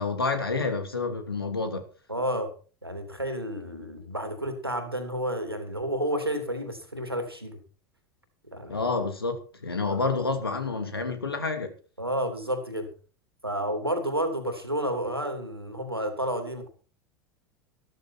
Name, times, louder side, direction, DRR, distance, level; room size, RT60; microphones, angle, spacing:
voice 1, 0.0-1.8 8.7-11.7, left 3 dB, 80° left, 2.9 m, -29 dB
voice 2, 2.1-2.5 2.8-7.6 8.5-8.9 9.9-10.0 12.0-12.9 13.4-16.7, equal, 90° right, 3.1 m, -30 dB
14.0 x 13.5 x 4.5 m
figure-of-eight pair, 80°, 12 cm